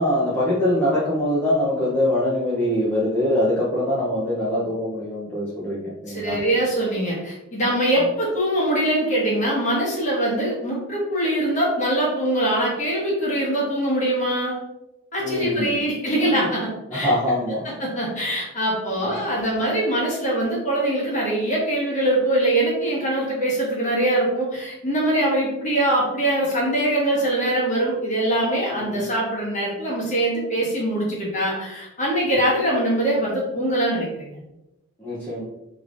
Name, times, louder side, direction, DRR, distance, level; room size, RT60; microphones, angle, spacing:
voice 1, 0.0-6.4 15.2-15.8 16.9-17.6 19.0-19.2 28.7-29.1 35.0-35.4, left 1 dB, 10° left, -9 dB, 0.6 m, -23 dB
voice 2, 6.1-14.5 15.1-17.2 17.8-34.4, right 1 dB, 35° left, -4 dB, 1.2 m, -23 dB
3.4 x 3.1 x 2.5 m, 0.93 s
head